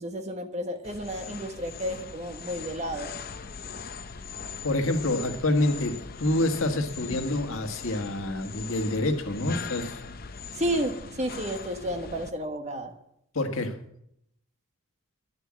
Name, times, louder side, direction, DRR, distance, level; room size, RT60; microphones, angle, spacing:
voice 1, 0.0-3.1 10.6-12.9, equal, 35° right, 6 dB, 1.4 m, -31 dB
sound 1, 0.8-12.3, left 5 dB, 45° left, 0.7 m, -40 dB
voice 2, 4.6-10.0 13.3-13.7, left 1 dB, 90° left, 6 dB, 1.6 m, -27 dB
11.5 x 10.0 x 7.6 m, 0.77 s
head